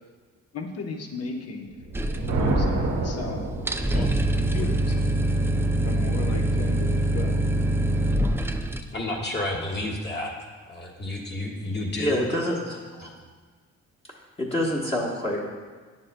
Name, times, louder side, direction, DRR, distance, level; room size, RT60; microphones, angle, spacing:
voice 1, 0.5-1.7 2.2-3.6 3.9-5.0 5.8-7.4 8.5-8.7 9.8-9.9, left 3 dB, 55° left, 3 dB, 1.0 m, -36 dB
Thunder, 1.8-4.2, right 2 dB, 85° right, 1.1 m, -27 dB
sound 1, 1.9-3.0 3.2-3.3 3.6-8.8, right 1 dB, 10° right, 0.3 m, -24 dB
voice 2, 8.9-10.3 10.7-12.2 13.0-13.1, left 1 dB, 35° left, -2 dB, 1.6 m, -30 dB
voice 3, 12.0-13.1 14.4-15.5, left 1 dB, 20° left, -4 dB, 1.0 m, -27 dB
9.9 x 7.3 x 2.2 m, 1.5 s
cardioid pair, 90°, 30 cm